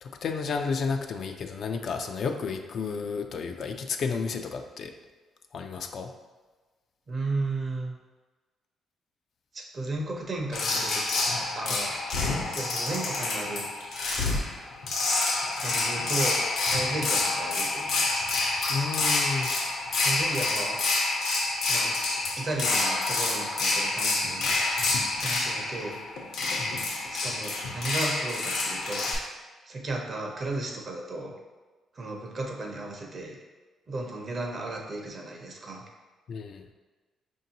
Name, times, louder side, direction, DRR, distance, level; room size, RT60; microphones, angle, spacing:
voice 1, 0.0-4.9 5.5-6.1 18.7-19.5 26.6-26.9 36.3-36.6, left 5 dB, 60° left, 5 dB, 0.3 m, -32 dB
voice 2, 7.1-8.0 9.5-11.0 11.5-11.9 12.5-13.7 15.6-18.3 20.0-20.8 21.7-22.0 22.4-24.7 25.2-26.0 27.1-29.1 29.7-31.4 31.9-33.4 33.9-35.9, right 2 dB, 45° right, 1 dB, 0.7 m, -34 dB
sound 1, 10.5-29.1, left 3 dB, 80° left, 0.7 m, -28 dB
5.1 x 2.6 x 2.8 m, 1.3 s
cardioid pair, 90°, 0 cm